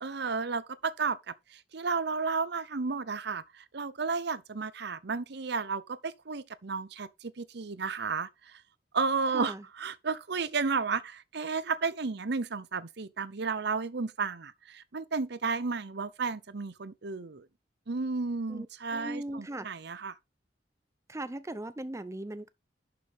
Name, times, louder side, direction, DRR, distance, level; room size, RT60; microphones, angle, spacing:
voice 1, 0.0-8.6 8.9-17.5 17.9-20.2, right 4 dB, 65° right, 0.8 m, -33 dB
voice 2, 9.3-9.6 18.5-18.7 18.9-19.7 21.1-22.5, right 1 dB, 15° right, 0.7 m, -38 dB
11.5 x 6.6 x 3.6 m
head